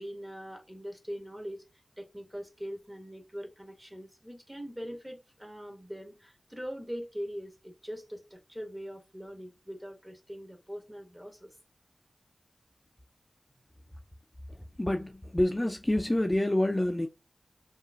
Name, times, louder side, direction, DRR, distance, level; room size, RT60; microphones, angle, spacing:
voice 1, 0.0-1.6 2.0-11.5, equal, 15° right, 0.9 m, -42 dB
voice 2, 14.8-17.1, left 1 dB, 20° left, 0.3 m, -27 dB
2.8 x 2.3 x 2.4 m
wide cardioid pair, 55°, 0 cm